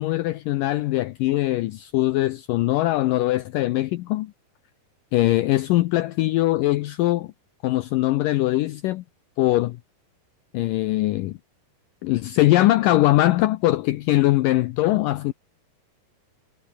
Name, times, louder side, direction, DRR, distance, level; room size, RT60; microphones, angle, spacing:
voice 1, 0.0-4.3 5.1-7.3 7.6-9.0 9.4-9.8 10.5-11.4 12.0-15.3, left 16 dB, 85° left, 1.9 m, -21 dB
omnidirectional pair, 4.8 m